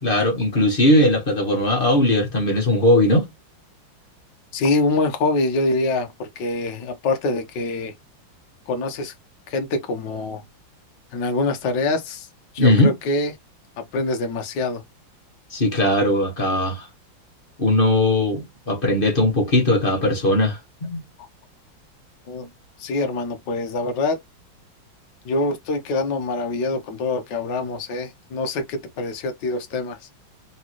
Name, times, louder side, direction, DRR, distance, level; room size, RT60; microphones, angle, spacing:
voice 1, 0.0-3.3 12.6-13.0 15.5-16.9 17.6-21.0, left 1 dB, 30° left, 1.6 m, -19 dB
voice 2, 4.5-7.9 8.7-9.1 9.5-10.4 11.1-12.3 12.5-13.3 13.9-14.8 22.3-22.5 22.8-24.2 25.3-30.0, left 2 dB, 60° left, 1.6 m, -25 dB
4.0 x 3.9 x 3.0 m
omnidirectional pair, 2.2 m